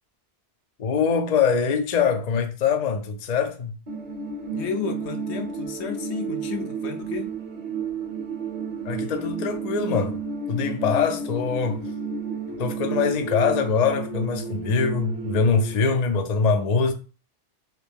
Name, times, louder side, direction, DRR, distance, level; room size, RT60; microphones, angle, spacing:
voice 1, 0.8-3.7 8.9-10.2 10.5-11.8 12.6-16.9, left 5 dB, 55° left, 0.5 m, -23 dB
sound 1, 3.9-15.7, right 4 dB, 40° right, 0.7 m, -32 dB
voice 2, 4.5-7.3, left 5 dB, 70° left, 0.9 m, -32 dB
2.9 x 2.9 x 3.3 m
omnidirectional pair, 1.2 m